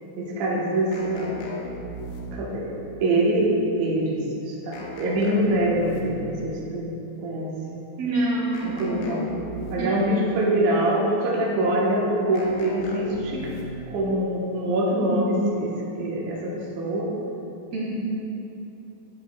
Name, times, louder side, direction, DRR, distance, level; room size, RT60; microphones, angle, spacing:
voice 1, 0.2-1.4 2.3-7.5 8.7-9.3 9.7-13.5 13.9-17.1, right 1 dB, 65° right, -5 dB, 2.0 m, -24 dB
sound 1, 0.9-2.7 4.7-6.4 8.5-10.1 12.3-13.9, left 1 dB, 80° left, 2.8 m, -37 dB
voice 2, 8.0-9.1 9.8-10.2 17.7-18.0, right 2 dB, 80° right, -6 dB, 3.8 m, -27 dB
9.7 x 9.2 x 2.3 m, 2.8 s
omnidirectional pair, 4.3 m